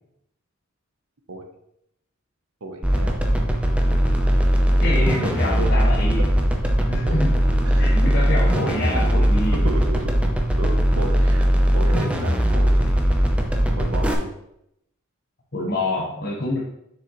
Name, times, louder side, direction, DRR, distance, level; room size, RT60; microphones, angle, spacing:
voice 1, 2.6-3.2 7.0-7.1 7.6-7.9 9.5-10.1 10.6-11.5 11.7-13.0 13.8-14.3, right 2 dB, 80° right, 4 dB, 1.1 m, -33 dB
sound 1, 2.8-14.1, equal, 5° right, 0.7 m, -19 dB
voice 2, 4.8-6.3 6.9-7.4 7.8-9.6 15.5-16.6, left 1 dB, 55° left, -5 dB, 1.2 m, -26 dB
6.6 x 6.3 x 3.2 m, 0.78 s
head